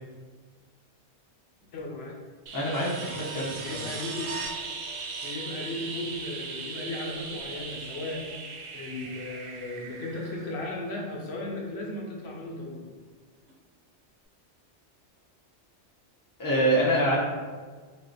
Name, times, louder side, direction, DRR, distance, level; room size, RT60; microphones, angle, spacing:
voice 1, 1.7-2.2 3.6-4.5 5.2-8.3 8.5-12.9, left 2 dB, 70° left, -2 dB, 0.9 m, -36 dB
voice 2, 2.5-3.6 16.4-17.2, right 1 dB, 25° left, -4 dB, 0.5 m, -25 dB
sound 1, 2.5-11.1 13.5-13.6, right 4 dB, 85° right, 0.9 m, -38 dB
3.4 x 2.4 x 3.8 m, 1.5 s
omnidirectional pair, 1.2 m